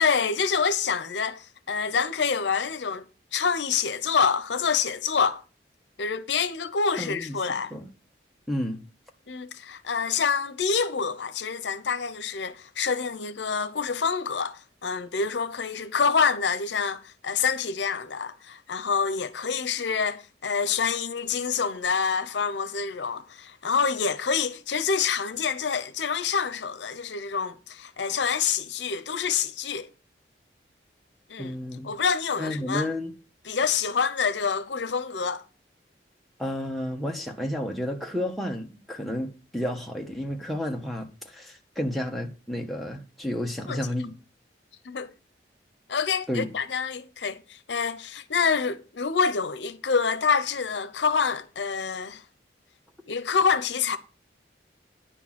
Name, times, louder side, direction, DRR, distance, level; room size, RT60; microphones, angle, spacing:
voice 1, 0.0-3.0 3.3-5.4 6.0-7.7 9.3-29.9 31.3-31.6 31.8-32.9 33.5-35.4 43.7-43.8 44.8-45.1 45.9-52.2 53.1-54.0, left 6 dB, 80° left, 0.8 m, -27 dB
voice 2, 7.0-7.4 7.7-7.9 8.5-8.8 31.4-31.9 32.4-33.1 36.4-44.1 46.3-46.5, left 1 dB, ahead, 1.3 m, -31 dB
10.0 x 4.6 x 7.4 m
head